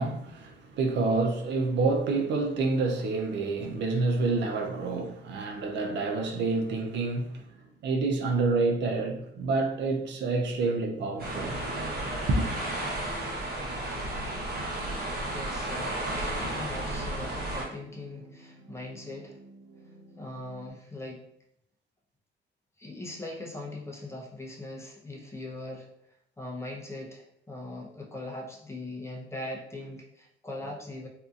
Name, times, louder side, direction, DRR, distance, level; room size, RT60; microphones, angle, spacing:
voice 1, 0.0-7.5 7.8-11.6 12.3-12.6, right 3 dB, 65° right, 0.5 m, -28 dB
sound 1, 10.4-20.7, equal, 90° right, 1.1 m, -51 dB
sound 2, 11.2-17.7, right 1 dB, 50° right, 1.0 m, -33 dB
voice 2, 15.3-19.4 20.2-21.2 22.8-25.9 26.4-31.1, left 2 dB, 15° left, 0.7 m, -40 dB
2.7 x 2.4 x 2.4 m
cardioid pair, 90°, 20 cm